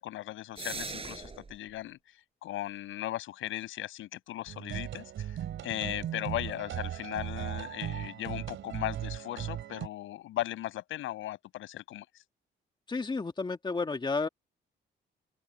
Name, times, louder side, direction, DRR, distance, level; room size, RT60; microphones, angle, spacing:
voice 1, 0.0-2.0 2.4-5.4 5.6-12.1, left 14 dB, 85° left, 7.5 m, -37 dB
sound 1, 0.6-1.6, right 4 dB, 30° right, 5.1 m, -39 dB
sound 2, 4.5-9.9, right 11 dB, 75° right, 3.4 m, -37 dB
voice 2, 12.9-14.3, left 4 dB, 25° left, 1.9 m, -31 dB
open air
cardioid pair, 90°, 20 cm